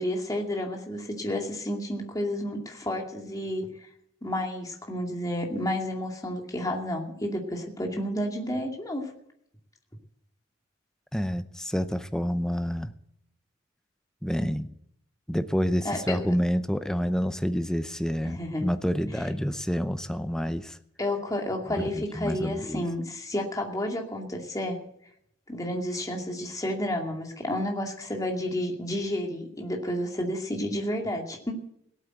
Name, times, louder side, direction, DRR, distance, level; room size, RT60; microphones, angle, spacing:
voice 1, 0.0-3.6 4.2-9.1 15.8-16.2 18.2-18.7 21.0-24.8 25.5-31.6, left 1 dB, 20° left, 1 dB, 2.4 m, -31 dB
voice 2, 11.1-12.9 14.2-14.7 15.3-20.8 21.7-22.8, equal, 5° left, 10 dB, 0.6 m, -28 dB
18.0 x 8.4 x 7.9 m, 0.73 s
head